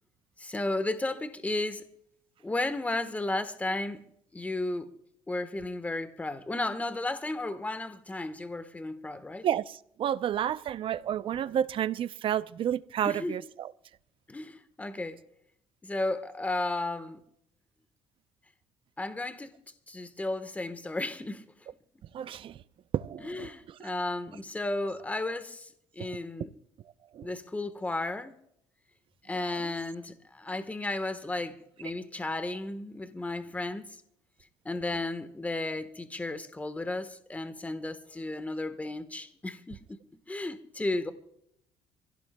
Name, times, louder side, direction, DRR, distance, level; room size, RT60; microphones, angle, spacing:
voice 1, 0.4-1.8 2.4-4.0 4.3-4.9 5.3-9.5 13.0-13.4 14.3-15.2 15.8-17.2 19.0-19.5 19.9-21.4 23.2-25.7 26.0-26.5 27.2-28.3 29.3-33.9 34.6-39.8 40.3-41.1, left 2 dB, 15° left, 1.3 m, -34 dB
voice 2, 9.4-13.7 22.1-22.6 22.9-23.9 26.0-26.1 27.1-27.3 29.4-29.7, right 10 dB, 50° right, 0.6 m, -31 dB
26.0 x 16.5 x 2.3 m
cardioid pair, 95°, 11 cm